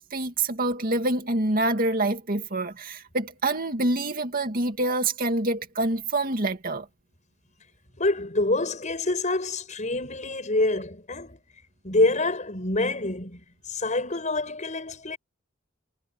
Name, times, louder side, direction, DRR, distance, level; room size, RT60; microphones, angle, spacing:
voice 1, 0.0-6.9, right 2 dB, 50° right, 2.3 m, -26 dB
voice 2, 8.0-11.4 11.8-15.2, left 2 dB, 40° left, 7.0 m, -26 dB
head